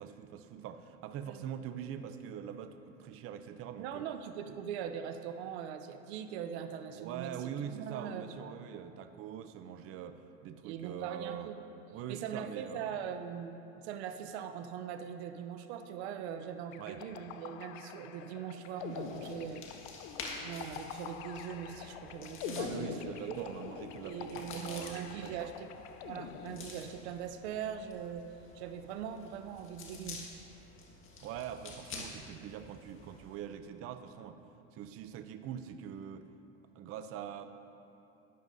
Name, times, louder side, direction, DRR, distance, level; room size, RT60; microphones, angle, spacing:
voice 1, 0.0-4.1 6.9-11.5 11.9-13.0 16.8-17.0 22.6-25.5 31.2-34.4 34.7-36.3 36.7-37.5, right 9 dB, 45° right, 9 dB, 0.6 m, -43 dB
voice 2, 3.8-8.2 10.6-11.6 12.1-19.7 20.4-23.0 23.3-23.4 24.0-25.7 26.0-28.2 28.5-30.2, right 8 dB, 85° right, 8 dB, 0.6 m, -41 dB
sound 1, 16.7-27.2, left 9 dB, 75° left, 0.6 m, -45 dB
sound 2, 18.8-33.4, left 3 dB, 40° left, 1.7 m, -49 dB
11.5 x 10.5 x 2.7 m, 2.8 s
supercardioid pair, 105°, 32 cm